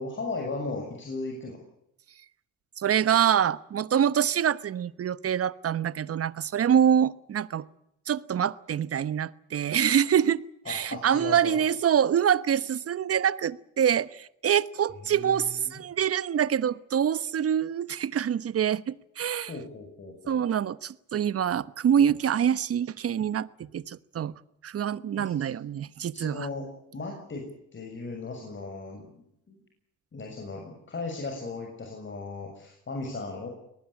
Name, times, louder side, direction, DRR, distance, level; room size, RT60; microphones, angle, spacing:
voice 1, 0.0-1.6 10.7-11.6 15.0-15.7 19.5-20.5 25.1-25.5 26.1-26.7 26.9-29.6 30.1-33.5, left 3 dB, 40° left, 2 dB, 6.9 m, -37 dB
voice 2, 2.8-7.6 8.1-19.5 20.3-24.3 24.6-26.5, right 9 dB, 50° right, 17 dB, 1.1 m, -25 dB
22.5 x 19.5 x 8.5 m, 0.78 s
cardioid pair, 90°, 30 cm